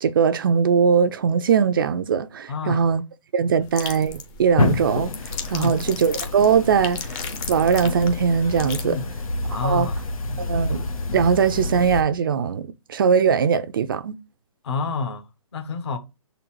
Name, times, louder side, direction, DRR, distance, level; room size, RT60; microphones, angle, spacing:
voice 1, 0.0-3.0 3.3-5.1 5.5-7.0 7.5-9.0 9.6-9.9 10.4-10.9 11.1-14.1, right 6 dB, 40° right, 0.4 m, -20 dB
voice 2, 2.5-2.9 5.5-5.8 8.8-9.1 9.5-10.7 14.6-16.0, left 4 dB, 50° left, 1.0 m, -29 dB
sound 1, 3.6-8.8, left 5 dB, 15° left, 0.6 m, -36 dB
sound 2, 4.6-12.0, left 2 dB, 75° left, 1.1 m, -28 dB
6.5 x 3.9 x 4.6 m
hypercardioid pair, 160°, 18 cm